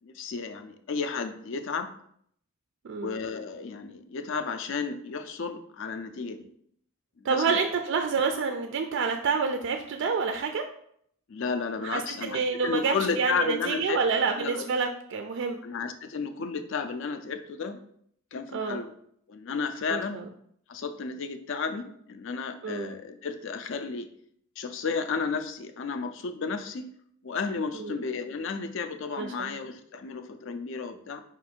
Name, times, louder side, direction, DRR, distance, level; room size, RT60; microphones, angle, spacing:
voice 1, 0.0-1.9 3.0-6.5 7.2-7.5 11.3-14.7 15.6-17.8 18.3-18.9 19.3-20.2 20.7-24.1 24.6-26.9 27.2-31.2, left 5 dB, 60° left, 8 dB, 0.4 m, -33 dB
voice 2, 2.8-3.2 7.2-10.6 11.8-15.6 18.5-18.8 19.9-20.2 22.6-22.9 27.7-28.0 29.2-29.5, right 5 dB, 55° right, 5 dB, 0.3 m, -28 dB
4.5 x 2.4 x 4.4 m, 0.68 s
head